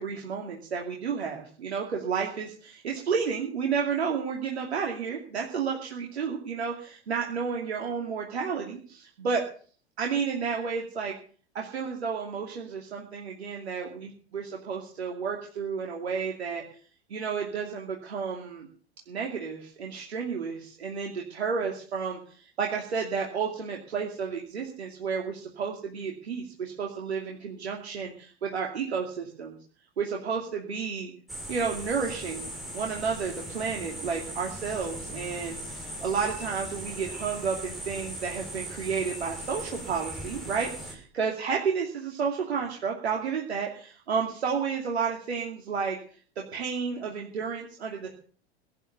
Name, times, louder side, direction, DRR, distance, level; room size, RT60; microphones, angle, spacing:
voice 1, 0.0-9.4 10.0-11.1 11.5-16.8 17.1-18.7 19.1-29.6 30.0-31.1 31.5-32.5 32.7-46.0 46.4-48.1, right 6 dB, 75° right, 0 dB, 2.7 m, -31 dB
sound 1, 31.3-40.9, right 1 dB, ahead, 5.8 m, -39 dB
17.0 x 9.9 x 6.8 m, 0.43 s
figure-of-eight pair, 90°, 33 cm